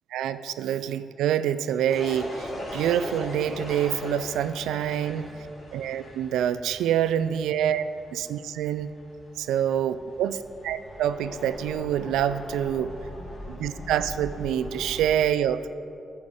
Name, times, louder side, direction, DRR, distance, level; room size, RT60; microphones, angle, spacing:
voice 1, 0.1-5.3 5.7-7.8 8.1-8.9 9.4-12.9 13.5-15.7, right 10 dB, 80° right, 13 dB, 0.3 m, -26 dB
sound 1, 1.9-15.0, left 1 dB, 60° left, 2.3 m, -40 dB
10.5 x 7.1 x 4.9 m, 2.6 s
supercardioid pair, 50°, 0 cm